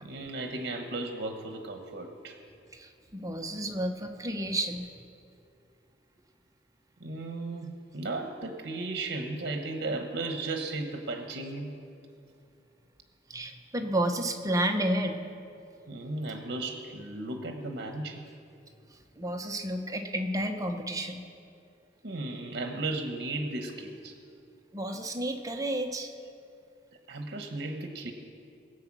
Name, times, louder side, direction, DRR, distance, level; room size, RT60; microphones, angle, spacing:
voice 1, 0.0-2.4 7.0-11.8 15.9-18.2 22.0-24.1 27.1-28.1, right 2 dB, 60° right, 5 dB, 1.1 m, -35 dB
voice 2, 2.7-4.9 13.3-15.2 19.2-21.2 24.7-26.1, right 1 dB, 20° right, 4 dB, 0.9 m, -31 dB
20.5 x 7.9 x 6.1 m, 2.6 s
head